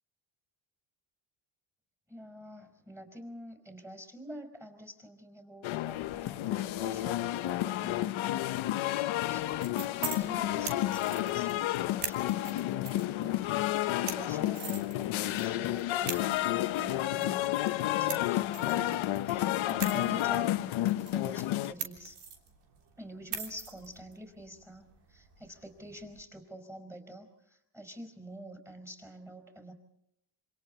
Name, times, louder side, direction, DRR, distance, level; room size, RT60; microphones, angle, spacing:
voice 1, 2.1-8.4 9.3-9.9 10.2-17.5 17.8-22.2 23.0-29.7, right 1 dB, 5° right, 6 dB, 4.9 m, -47 dB
sound 1, 5.6-21.7, left 14 dB, 70° left, 0.9 m, -31 dB
sound 2, 9.3-26.2, right 6 dB, 85° right, 3.5 m, -45 dB
27.5 x 26.0 x 4.3 m, 0.80 s
cardioid pair, 115°, 50 cm